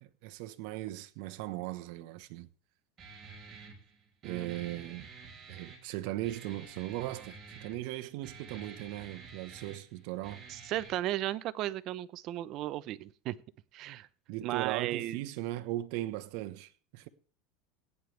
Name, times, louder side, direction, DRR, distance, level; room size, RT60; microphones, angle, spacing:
voice 1, 0.0-2.5 4.2-5.1 5.5-10.4 14.3-17.1, right 16 dB, 65° right, 1.2 m, -38 dB
Guitar, 3.0-11.0, right 4 dB, 25° right, 4.8 m, -50 dB
voice 2, 4.2-4.6 10.5-13.4 13.7-14.1 14.4-15.2, right 14 dB, 45° right, 0.8 m, -35 dB
17.0 x 9.6 x 3.4 m
supercardioid pair, 140°, 0 cm